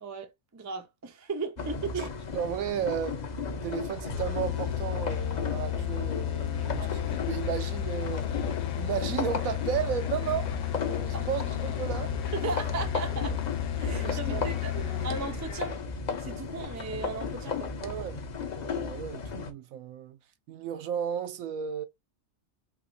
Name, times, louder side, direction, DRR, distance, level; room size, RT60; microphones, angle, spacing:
voice 1, 0.0-2.1 6.6-6.9 11.1-11.3 12.3-13.4 13.8-14.7 15.0-15.8 16.2-17.7, right 4 dB, 25° right, 0.4 m, -36 dB
sound 1, 1.6-19.5, left 4 dB, 45° left, 0.6 m, -35 dB
voice 2, 2.0-3.2 3.6-8.3 8.8-10.5 10.9-12.3 13.1-13.2 13.9-14.4 14.7-15.3 17.8-18.2 18.6-20.2 20.5-21.9, right 9 dB, 75° right, 1.0 m, -34 dB
sound 2, 4.1-15.5, left 16 dB, 90° left, 1.1 m, -33 dB
sound 3, 6.5-15.8, left 9 dB, 65° left, 0.9 m, -47 dB
3.6 x 3.0 x 2.5 m
omnidirectional pair, 1.5 m